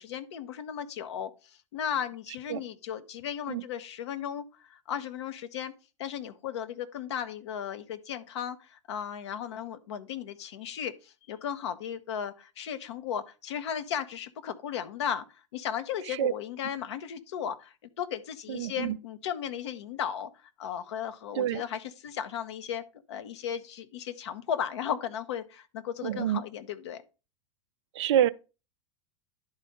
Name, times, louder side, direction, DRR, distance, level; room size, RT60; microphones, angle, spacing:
voice 1, 0.0-5.7 6.0-20.3 20.6-22.8 23.1-27.0, left 9 dB, 65° left, 0.8 m, -35 dB
voice 2, 18.5-19.0 21.4-21.6 26.0-26.4 27.9-28.3, right 10 dB, 65° right, 0.4 m, -27 dB
10.5 x 4.2 x 5.0 m
figure-of-eight pair, 90°, 16 cm